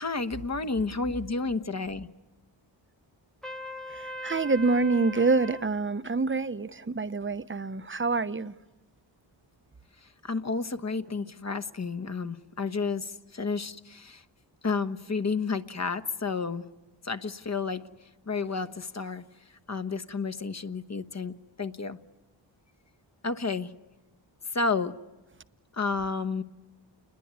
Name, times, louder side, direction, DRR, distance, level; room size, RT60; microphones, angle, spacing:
voice 1, 0.0-2.1 10.0-14.2 14.6-16.7 17.0-17.9 18.3-19.2 19.7-22.0 23.2-23.7 24.5-24.9 25.7-26.4, left 4 dB, 35° left, 1.2 m, -31 dB
Trumpet, 3.4-5.7, equal, ahead, 1.2 m, -39 dB
voice 2, 3.9-8.5, right 3 dB, 25° right, 0.9 m, -27 dB
29.5 x 21.5 x 9.6 m
cardioid pair, 75°, 46 cm